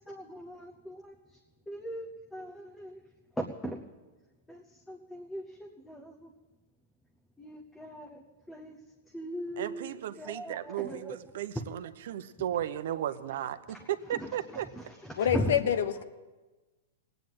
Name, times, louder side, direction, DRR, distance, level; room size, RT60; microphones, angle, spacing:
voice 1, 0.1-1.1 1.7-3.0 3.4-3.8 4.5-4.6 4.9-5.4 5.9-6.1 7.4-8.2 8.5-8.7 9.1-11.2 14.1-14.8 15.2-15.6, equal, 5° left, 2 dB, 0.8 m, -38 dB
voice 2, 9.6-14.7, right 11 dB, 65° right, 11 dB, 0.9 m, -35 dB
voice 3, 15.2-16.0, left 9 dB, 75° left, 11 dB, 1.0 m, -26 dB
18.0 x 9.1 x 7.9 m, 1.2 s
supercardioid pair, 160°, 0 cm